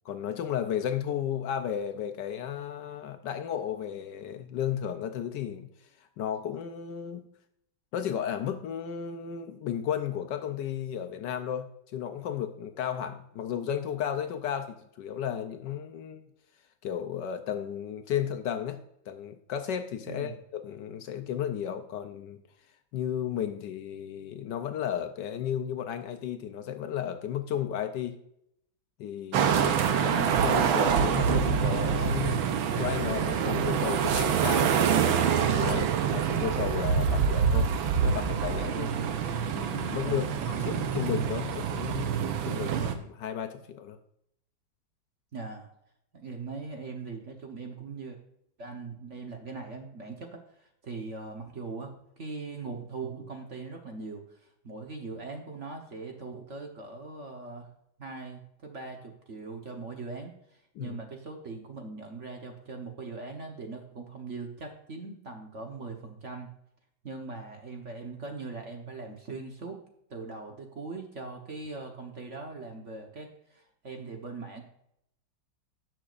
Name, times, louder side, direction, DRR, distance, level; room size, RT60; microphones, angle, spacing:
voice 1, 0.0-5.7 6.2-7.3 7.9-16.2 16.8-18.8 19.1-22.4 22.9-28.2 29.0-32.5 32.7-37.7 38.0-38.9 39.5-42.1 42.4-44.0 60.8-61.0, left 9 dB, 70° left, 8 dB, 1.2 m, -34 dB
sound 1, 29.3-42.9, right 7 dB, 85° right, 1.6 m, -26 dB
voice 2, 40.0-40.8 45.3-45.7 46.1-48.2 48.6-57.7 58.0-66.5 67.0-69.8 70.1-74.6, right 4 dB, 45° right, 2 dB, 1.2 m, -41 dB
17.0 x 6.1 x 2.5 m, 0.76 s
omnidirectional pair, 2.2 m